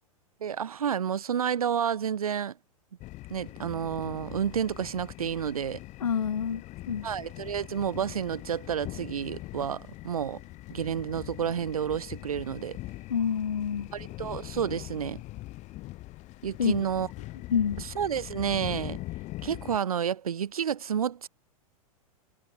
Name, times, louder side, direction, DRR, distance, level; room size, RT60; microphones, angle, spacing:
voice 1, 0.4-2.6 3.3-5.8 7.0-10.4 10.7-12.8 13.9-15.2 16.4-17.1 17.8-19.0 19.4-21.3, right 8 dB, 85° right, 5.6 m, -30 dB
sound 1, 3.0-19.8, left 18 dB, 40° left, 6.7 m, -42 dB
voice 2, 6.0-7.1 13.1-13.9 16.6-16.8 17.5-17.8, left 7 dB, 90° left, 1.2 m, -28 dB
hypercardioid pair, 110°, 18 cm